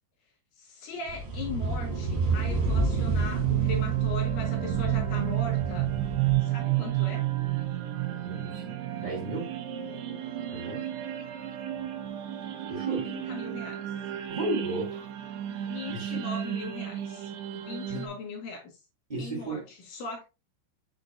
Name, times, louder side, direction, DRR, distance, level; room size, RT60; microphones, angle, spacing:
voice 1, 0.6-5.9 6.4-7.3 13.0-13.9 15.6-17.3 17.6-18.7 19.2-20.2, left 3 dB, 65° left, 2.2 m, -39 dB
sound 1, 1.1-6.4, right 2 dB, 50° right, 3.5 m, -30 dB
sound 2, 1.3-18.1, right 14 dB, 80° right, 2.9 m, -31 dB
voice 2, 8.3-8.7 9.0-9.5 10.5-10.8 12.7-13.1 14.3-15.1 15.5-15.6 15.9-16.2 17.9-18.1 19.1-19.6, right 2 dB, 20° right, 1.1 m, -34 dB
6.9 x 6.4 x 2.5 m
omnidirectional pair, 5.6 m